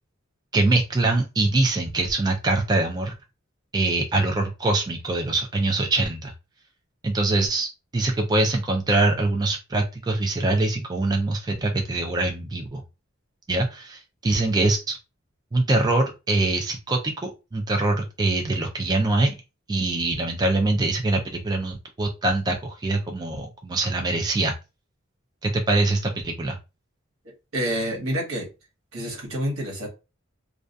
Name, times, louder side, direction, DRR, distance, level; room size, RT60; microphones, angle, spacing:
voice 1, 0.5-3.1 3.7-6.3 7.0-12.8 13.5-15.0 15.5-19.3 19.7-24.5 25.4-26.6, right 2 dB, 20° right, 3 dB, 0.3 m, -23 dB
voice 2, 27.5-28.5 28.9-29.9, equal, 85° right, 1 dB, 1.0 m, -27 dB
2.3 x 2.3 x 2.5 m, 0.27 s
head